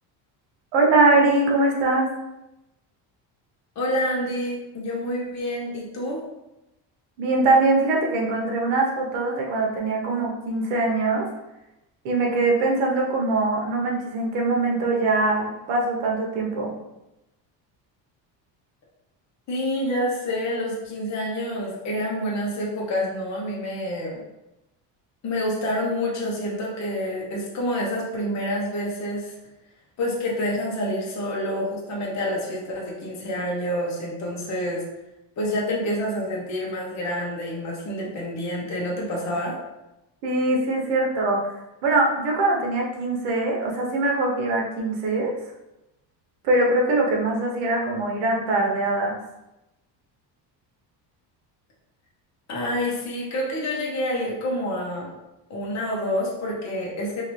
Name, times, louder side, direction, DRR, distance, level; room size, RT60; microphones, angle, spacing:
voice 1, 0.7-2.1 7.2-11.3 12.0-16.7 40.2-41.4 41.8-45.3 46.4-49.2, right 2 dB, 85° right, 0 dB, 1.0 m, -22 dB
voice 2, 3.7-6.2 19.5-24.2 25.2-29.3 30.0-34.8 35.4-39.5 52.5-55.1 55.5-57.2, left 1 dB, 40° left, -3 dB, 1.0 m, -28 dB
2.9 x 2.8 x 3.1 m, 0.93 s
cardioid pair, 120°, 44 cm